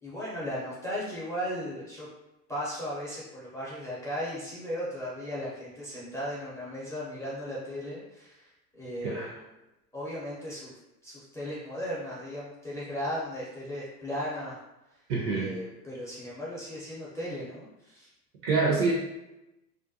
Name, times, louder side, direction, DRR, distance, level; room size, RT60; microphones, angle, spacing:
voice 1, 0.0-2.1 2.5-9.5 9.9-10.7 11.0-14.6 15.3-18.1, equal, 5° left, -9 dB, 0.5 m, -36 dB
voice 2, 15.1-15.5 18.4-18.9, right 4 dB, 50° right, -4 dB, 0.8 m, -26 dB
2.5 x 2.1 x 2.6 m, 0.97 s
hypercardioid pair, 95°, 50 cm